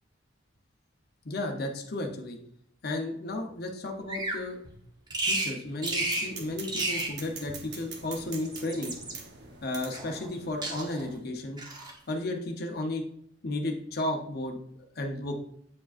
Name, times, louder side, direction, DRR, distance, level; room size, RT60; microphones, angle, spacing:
voice 1, 1.2-2.4 2.8-4.7 5.2-8.9 9.6-11.6 12.1-13.0 13.4-14.6 15.0-15.3, left 2 dB, 55° left, 2 dB, 0.8 m, -33 dB
Bird vocalization bird call bird song, 4.1-4.4 5.1-5.5 5.8-6.3 6.6-7.2 8.2-9.2 9.9-10.4 10.6-11.1 11.6-12.0, right 2 dB, 20° right, 0.9 m, -32 dB
sound 1, 5.8-11.2, right 4 dB, 60° right, 0.9 m, -45 dB
8.3 x 4.8 x 2.5 m, 0.70 s
head